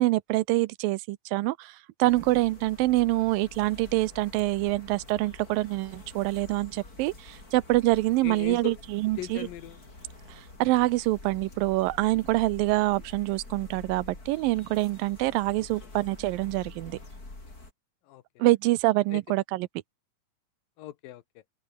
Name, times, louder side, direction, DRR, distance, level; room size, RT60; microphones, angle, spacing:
voice 1, 0.0-9.5 10.3-17.0 18.4-19.7, right 19 dB, 85° right, 2.4 m, -26 dB
sound 1, 2.0-17.7, left 2 dB, 25° left, 5.9 m, -47 dB
voice 2, 8.2-8.8 9.2-9.8 15.5-15.9 18.1-18.5 19.1-19.2 20.8-21.2, left 14 dB, 80° left, 2.8 m, -39 dB
open air
omnidirectional pair, 4.1 m